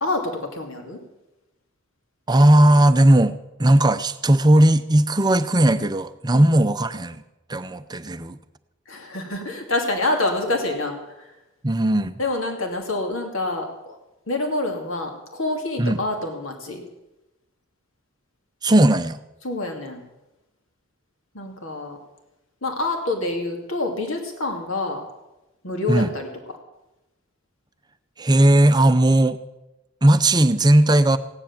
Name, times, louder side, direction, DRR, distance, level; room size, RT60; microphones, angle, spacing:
voice 1, 0.0-1.0 6.3-6.5 8.9-11.3 12.2-14.0 14.3-16.8 19.4-20.0 21.3-22.0 22.6-25.0 25.6-26.6, left 2 dB, 70° left, 3 dB, 2.6 m, -27 dB
voice 2, 2.3-7.2 7.5-8.4 11.6-12.2 15.8-16.0 18.6-19.2 25.9-26.1 28.2-29.4 30.0-31.2, right 1 dB, 20° right, 11 dB, 0.6 m, -17 dB
16.0 x 10.5 x 7.2 m, 0.98 s
head